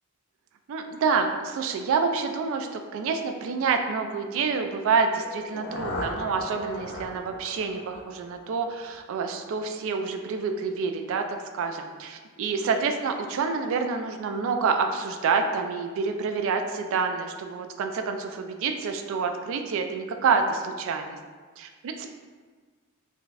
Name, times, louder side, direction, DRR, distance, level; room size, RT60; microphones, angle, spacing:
voice 1, 0.7-21.2 21.6-22.1, right 5 dB, 65° right, 6 dB, 0.3 m, -27 dB
sound 1, 5.2-9.1, left 1 dB, 55° left, 0.4 m, -38 dB
4.0 x 2.2 x 2.3 m, 1.5 s
head